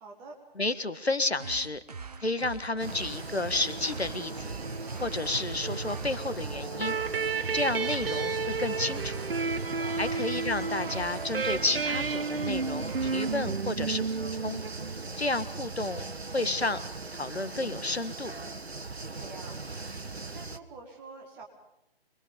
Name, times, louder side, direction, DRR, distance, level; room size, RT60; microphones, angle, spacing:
voice 1, 0.0-0.4 9.5-10.2 18.9-19.6 20.3-21.4, right 3 dB, 5° right, 0 dB, 0.8 m, -47 dB
voice 2, 0.6-1.8 2.2-4.6 5.0-7.0 7.5-9.2 10.0-14.0 14.4-14.6 15.2-16.1 16.3-16.8 17.1-18.3, left 2 dB, 85° left, 12 dB, 1.6 m, -31 dB
sound 1, 1.4-13.4, right 4 dB, 40° right, 1.1 m, -41 dB
sound 2, 2.8-20.6, right 3 dB, 85° right, 1.2 m, -39 dB
sound 3, 6.8-15.2, right 4 dB, 65° right, 1.0 m, -32 dB
25.5 x 21.0 x 5.2 m, 0.87 s
figure-of-eight pair, 150°, 31 cm